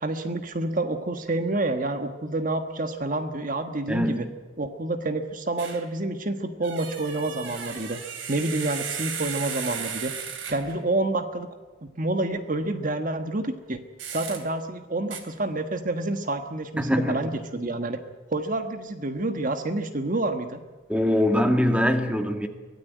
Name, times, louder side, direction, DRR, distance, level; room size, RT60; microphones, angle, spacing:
voice 1, 0.0-4.3 4.6-8.0 8.3-10.1 10.5-11.5 11.8-13.8 14.1-18.0 18.3-20.6, right 2 dB, 45° right, 8 dB, 1.4 m, -28 dB
voice 2, 3.9-4.3 16.8-17.2 20.9-22.5, left 1 dB, 5° right, 6 dB, 1.8 m, -23 dB
sound 1, 5.6-5.9 6.6-10.8 14.0-14.4 15.1-15.2, right 7 dB, 80° right, 3.2 m, -35 dB
24.0 x 17.5 x 9.3 m, 1.3 s
head